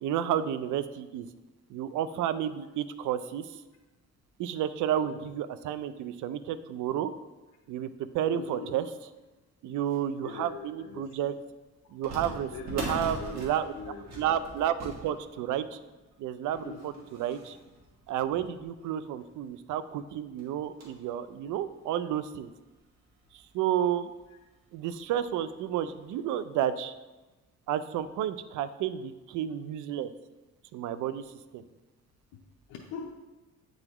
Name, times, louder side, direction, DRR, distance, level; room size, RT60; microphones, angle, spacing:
voice 1, 0.0-1.3 1.7-3.5 4.4-7.1 7.7-8.8 9.6-11.3 11.9-13.7 14.2-15.8 16.2-17.6 18.1-22.5 23.5-24.1 24.7-26.9 27.7-30.1 30.7-31.2 31.5-31.6, right 10 dB, 80° right, 13 dB, 0.4 m, -31 dB
voice 2, 4.9-5.3 8.3-8.9 10.2-11.1 12.5-14.1 16.6-17.0 24.3-24.4 32.7-33.1, left 5 dB, 90° left, -1 dB, 0.7 m, -42 dB
sound 1, 10.6-10.7 12.0-19.0 19.5-19.6 19.9-20.0 20.4-21.1 21.6-21.7 22.6-22.7 23.0-23.2 24.5-24.8 25.2-25.3 25.9-26.1, right 1 dB, 60° right, 1.7 m, -42 dB
8.7 x 3.9 x 3.0 m, 1.1 s
cardioid pair, 90°, 30 cm